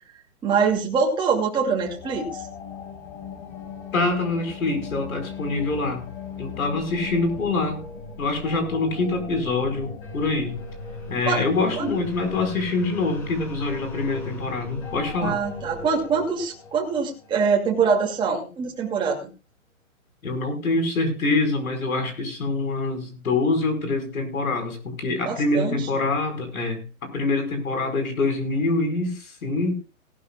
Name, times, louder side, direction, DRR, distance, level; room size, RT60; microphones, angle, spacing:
voice 1, 0.4-2.4 11.3-11.4 11.8-11.9 15.2-19.3 25.2-25.8, right 5 dB, 10° right, -2 dB, 2.5 m, -24 dB
sound 1, 1.8-18.0, left 4 dB, 35° left, 5.4 m, -38 dB
voice 2, 3.9-6.1 6.4-7.8 8.2-10.6 11.1-15.4 20.2-29.8, left 3 dB, 70° left, 5 dB, 5.0 m, -25 dB
18.5 x 12.0 x 2.4 m, 0.31 s
hypercardioid pair, 145°, 43 cm